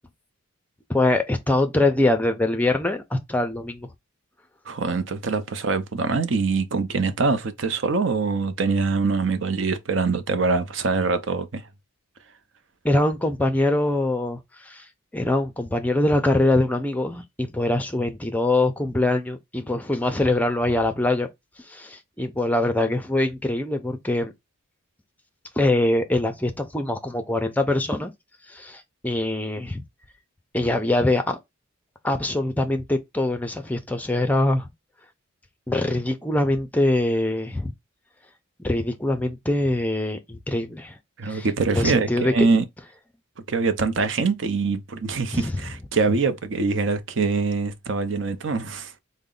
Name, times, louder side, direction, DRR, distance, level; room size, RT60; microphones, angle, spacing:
voice 1, 0.9-3.9 12.8-14.9 15.1-21.3 21.6-24.3 25.6-28.1 28.5-29.8 30.5-31.4 32.0-34.7 35.7-37.7 38.6-41.0 41.2-42.5 45.3-45.6, left 1 dB, 10° left, 0.5 m, -23 dB
voice 2, 4.7-11.6 41.2-42.6 43.5-48.9, right 4 dB, 60° right, 0.6 m, -24 dB
3.9 x 2.1 x 3.8 m
head